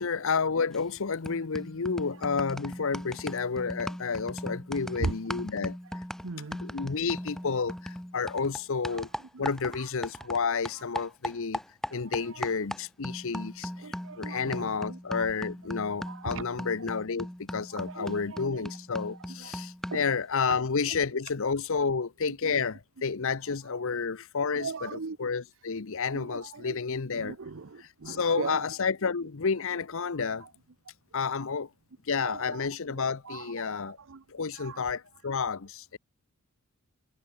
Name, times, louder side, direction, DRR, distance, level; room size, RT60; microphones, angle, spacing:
voice 1, 0.0-6.0 6.6-9.1 9.4-24.9 25.2-27.3 27.8-30.5 31.1-31.7 32.0-34.0 34.3-36.0, left 5 dB, 65° left, 0.8 m, -31 dB
sound 1, 0.7-1.0 1.3-10.4 10.7-20.1, equal, ahead, 0.4 m, -39 dB
voice 2, 5.0-5.4 6.2-6.6 8.9-9.0 9.3-9.9 10.2-10.3 10.8-10.9 12.2-12.5 13.8-15.3 16.1-16.4 16.8-16.9 17.7-18.7 19.4-19.5 19.9-20.1 21.7-21.9 22.4-22.6 24.5-25.2 26.1-26.8 27.1-28.7 30.4-30.5 32.2-34.2 34.5-34.9, right 4 dB, 60° right, 0.8 m, -39 dB
head